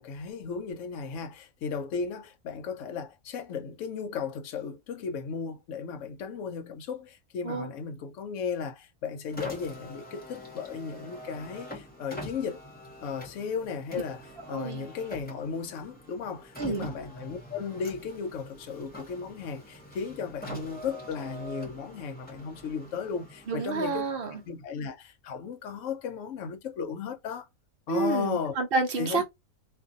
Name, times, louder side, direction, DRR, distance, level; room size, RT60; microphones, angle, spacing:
voice 1, 0.0-12.6 13.0-24.1 24.4-27.5 27.9-28.6 29.0-29.3, left 6 dB, 65° left, 1.0 m, -35 dB
Car, 9.3-24.7, equal, 5° left, 0.9 m, -45 dB
voice 2, 14.5-14.9 16.6-16.9 23.5-24.4 27.9-29.3, right 4 dB, 55° right, 0.7 m, -29 dB
2.6 x 2.6 x 2.4 m
omnidirectional pair, 1.6 m